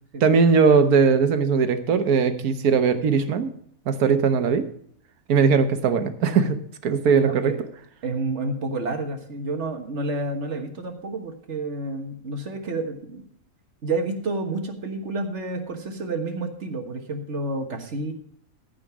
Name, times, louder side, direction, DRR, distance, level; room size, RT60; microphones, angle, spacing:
voice 1, 0.2-3.5 3.9-4.7 5.3-7.5, right 5 dB, 80° right, 10 dB, 1.4 m, -19 dB
voice 2, 7.1-7.6 8.0-13.2 13.8-18.1, right 2 dB, 50° right, 5 dB, 1.6 m, -29 dB
14.5 x 5.3 x 6.0 m, 0.64 s
omnidirectional pair, 1.5 m